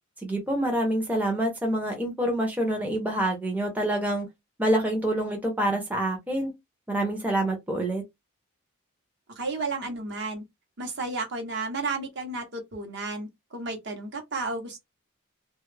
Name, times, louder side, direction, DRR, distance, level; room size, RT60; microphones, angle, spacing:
voice 1, 0.2-4.3 4.6-6.5 6.9-8.0, right 1 dB, 5° right, 0.5 m, -26 dB
voice 2, 9.4-10.4 10.8-14.8, right 3 dB, 50° right, 0.8 m, -32 dB
2.2 x 2.0 x 3.1 m
head